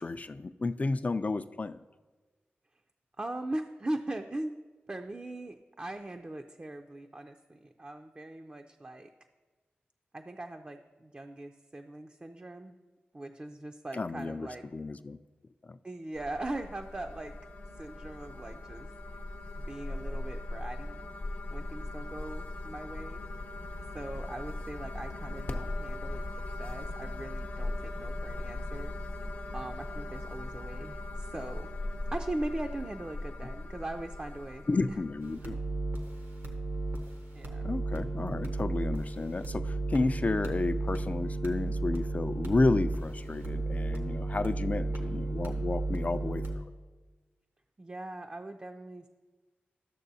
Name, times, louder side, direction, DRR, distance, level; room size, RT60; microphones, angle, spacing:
voice 1, 0.0-1.8 13.9-15.2 15.6-15.8 34.7-35.6 37.6-46.6, left 3 dB, 40° left, 12 dB, 0.3 m, -31 dB
voice 2, 3.2-4.6 4.9-9.1 10.1-12.7 13.1-14.7 15.8-17.3 17.8-19.2 19.7-21.1 21.5-23.2 23.9-28.9 29.5-31.7 32.1-35.0 37.3-37.6 47.8-49.1, right 1 dB, 30° right, 4 dB, 0.4 m, -40 dB
sound 1, 16.2-35.4, left 2 dB, 60° left, 0.7 m, -39 dB
sound 2, 35.2-46.6, right 2 dB, 85° right, 1.0 m, -34 dB
12.5 x 6.6 x 2.7 m, 1.3 s
cardioid pair, 50°, 4 cm